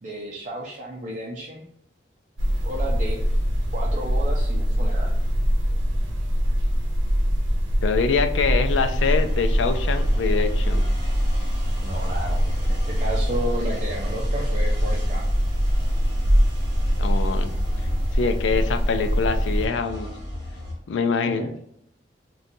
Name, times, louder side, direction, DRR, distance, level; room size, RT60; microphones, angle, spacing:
voice 1, 0.0-1.6 2.6-3.2 3.7-5.1 11.8-15.3 21.4-21.6, right 1 dB, 45° right, -3 dB, 0.5 m, -33 dB
sound 1, 2.4-19.7, equal, 80° right, 0.7 m, -23 dB
voice 2, 7.8-10.8 17.0-17.5 18.1-20.1 20.9-21.6, left 5 dB, 80° left, 8 dB, 0.4 m, -24 dB
sound 2, 8.6-20.7, equal, 25° right, 1.1 m, -37 dB
3.9 x 2.3 x 2.6 m, 0.74 s
head